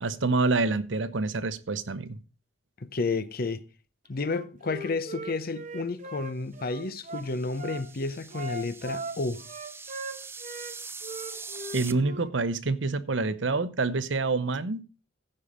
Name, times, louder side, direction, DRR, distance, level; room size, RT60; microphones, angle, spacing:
voice 1, 0.0-2.2 11.7-14.8, right 3 dB, 70° right, 0.8 m, -27 dB
voice 2, 2.8-3.6 4.1-9.4, left 3 dB, 50° left, 0.7 m, -31 dB
Wind instrument woodwind instrument, 4.2-7.8 8.3-10.8 11.0-12.3, right 2 dB, 40° right, 1.2 m, -39 dB
sound 1, 6.8-11.9, right 4 dB, 10° right, 0.5 m, -43 dB
15.0 x 5.6 x 4.9 m
head